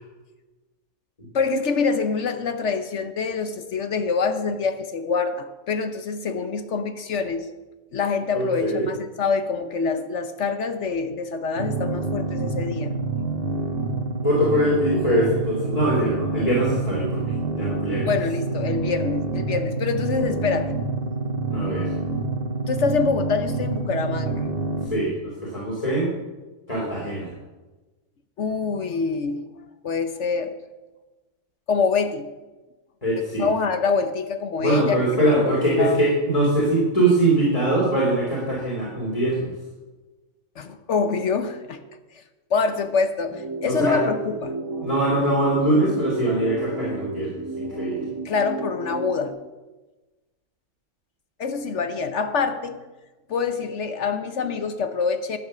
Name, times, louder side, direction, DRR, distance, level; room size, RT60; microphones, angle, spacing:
voice 1, 1.3-7.5 7.9-13.0 18.1-20.8 22.7-24.5 28.4-29.5 29.8-30.5 31.7-32.3 33.2-36.0 40.6-41.8 42.5-44.6 48.2-49.3 51.4-52.8 53.3-55.4, left 5 dB, 55° left, 8 dB, 1.0 m, -25 dB
voice 2, 8.3-8.9 14.2-18.1 21.5-21.9 24.9-26.1 26.7-27.3 33.0-33.5 34.6-39.5 43.7-44.0 44.8-47.3 47.6-48.0, right 1 dB, 25° left, -5 dB, 3.1 m, -22 dB
sound 1, 11.6-24.9, right 3 dB, 40° right, 1.3 m, -27 dB
sound 2, 43.3-49.3, right 2 dB, 20° right, 0.9 m, -32 dB
11.5 x 8.9 x 6.3 m, 1.2 s
omnidirectional pair, 1.6 m